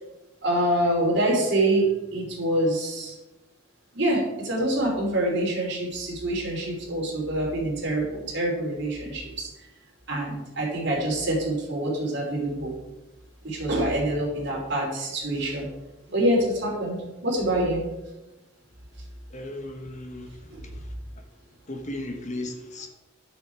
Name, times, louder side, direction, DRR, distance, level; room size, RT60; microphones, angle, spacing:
voice 1, 0.4-3.1 3.9-9.5 10.1-12.7 13.4-15.7 16.1-17.8 20.5-20.6, right 1 dB, 55° right, -2 dB, 3.2 m, -26 dB
voice 2, 19.3-20.3 20.7-20.9 21.7-22.9, left 1 dB, 35° left, 4 dB, 1.0 m, -35 dB
10.5 x 6.4 x 4.6 m, 1.0 s
head